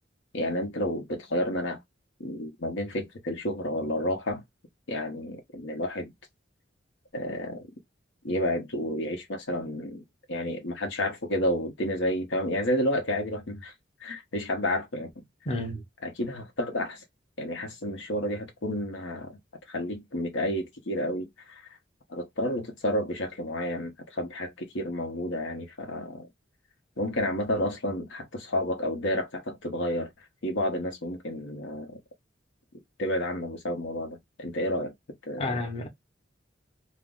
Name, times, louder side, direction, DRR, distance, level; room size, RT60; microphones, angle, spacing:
voice 1, 0.3-1.8 2.2-4.4 4.9-6.1 7.1-7.7 8.2-10.0 10.3-13.7 14.0-15.1 16.0-17.0 17.4-19.4 19.7-21.8 22.1-26.3 27.0-30.1 30.4-32.0 33.0-34.9 35.3-35.6, left 1 dB, 80° left, 0.8 m, -30 dB
voice 2, 15.5-15.8 35.4-35.9, left 2 dB, 30° left, 0.8 m, -30 dB
2.5 x 2.0 x 3.6 m
head